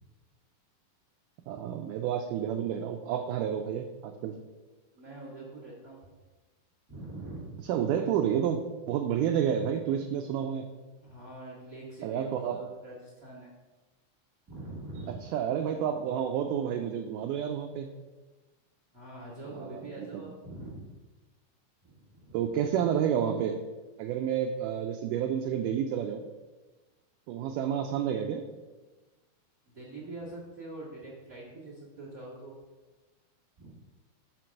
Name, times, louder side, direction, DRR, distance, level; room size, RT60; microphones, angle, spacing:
voice 1, 1.5-4.4 7.7-8.6 8.9-10.6 12.0-12.6 15.1-17.9 19.5-20.3 22.3-23.6 24.0-26.2 27.3-28.4, right 9 dB, 80° right, 5 dB, 1.9 m, -30 dB
voice 2, 4.9-6.0 6.9-7.5 11.0-13.5 14.5-15.2 18.9-20.8 21.8-22.5 29.7-32.6 33.6-33.7, right 2 dB, 45° right, -4 dB, 1.0 m, -44 dB
5.8 x 4.6 x 6.2 m, 1.2 s
omnidirectional pair, 4.1 m